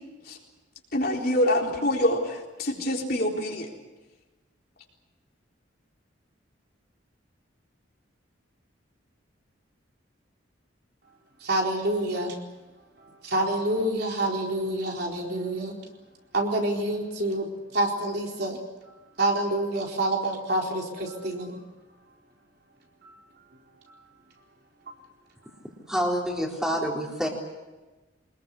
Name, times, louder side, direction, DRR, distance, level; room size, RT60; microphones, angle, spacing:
voice 1, 0.9-3.7, left 1 dB, 50° left, 0 dB, 4.0 m, -25 dB
voice 2, 11.4-12.4 13.0-15.8 16.3-18.6 19.2-21.6 23.0-23.1, right 1 dB, 55° right, 0 dB, 4.2 m, -27 dB
voice 3, 25.9-27.3, equal, 5° right, 0 dB, 3.9 m, -27 dB
24.5 x 21.0 x 8.4 m, 1.2 s
head